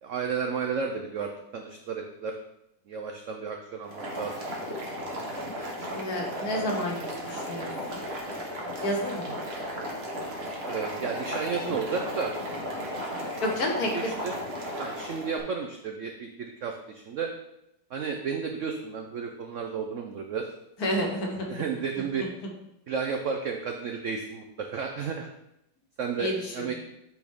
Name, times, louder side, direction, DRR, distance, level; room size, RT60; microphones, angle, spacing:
voice 1, 0.0-2.3 2.9-4.5 10.7-12.3 12.9-13.1 13.9-14.3 14.8-17.3 17.9-20.5 21.5-22.3 22.9-25.3 26.0-26.7, right 5 dB, 85° right, 3 dB, 0.6 m, -32 dB
Boiling, 3.8-15.4, equal, 40° right, 1.2 m, -35 dB
voice 2, 5.9-8.0 8.8-9.3 13.4-14.1 20.8-21.6 26.2-26.7, equal, 55° left, 1 dB, 1.5 m, -30 dB
8.4 x 4.2 x 3.5 m, 0.81 s
omnidirectional pair, 2.0 m